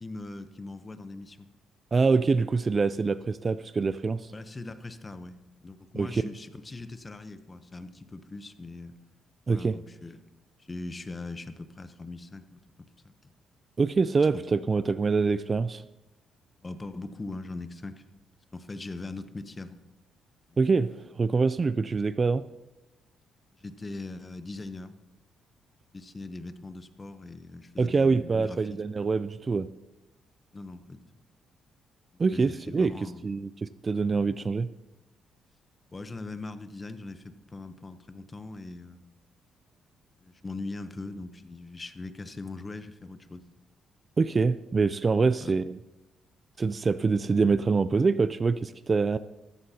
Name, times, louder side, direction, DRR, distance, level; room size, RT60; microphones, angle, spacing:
voice 1, 0.0-1.5 4.3-8.9 9.5-10.2 10.6-13.3 14.3-14.4 16.6-18.0 18.5-19.8 23.5-24.9 25.9-28.8 30.5-31.0 32.3-33.2 35.9-39.1 40.2-43.4 45.4-45.5, left 3 dB, 25° left, 11 dB, 0.8 m, -41 dB
voice 2, 1.9-4.3 5.9-6.2 9.5-9.8 13.8-15.8 20.6-22.5 27.8-29.7 32.2-34.7 44.2-45.7 46.6-49.2, right 4 dB, 35° right, 15 dB, 0.3 m, -25 dB
14.0 x 14.0 x 2.8 m, 1.0 s
cardioid pair, 90°, 0 cm